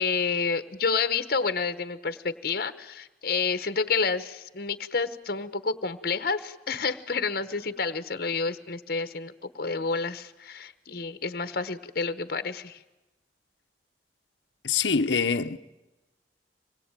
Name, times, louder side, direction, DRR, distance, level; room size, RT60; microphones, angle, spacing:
voice 1, 0.0-12.8, left 4 dB, 55° left, 1.1 m, -29 dB
voice 2, 14.6-15.6, left 5 dB, 85° left, 0.9 m, -24 dB
25.0 x 20.5 x 9.0 m
head